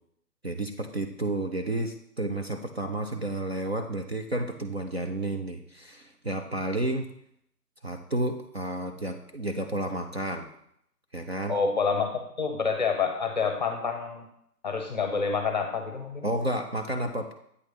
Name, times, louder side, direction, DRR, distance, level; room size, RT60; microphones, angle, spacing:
voice 1, 0.4-7.1 7.8-10.5 11.1-11.6 16.2-17.3, right 1 dB, 45° right, 4 dB, 0.4 m, -31 dB
voice 2, 11.5-12.1 12.4-14.2 14.6-16.3, left 5 dB, 30° left, 5 dB, 0.7 m, -27 dB
8.2 x 3.1 x 5.2 m, 0.72 s
figure-of-eight pair, 150°, 48 cm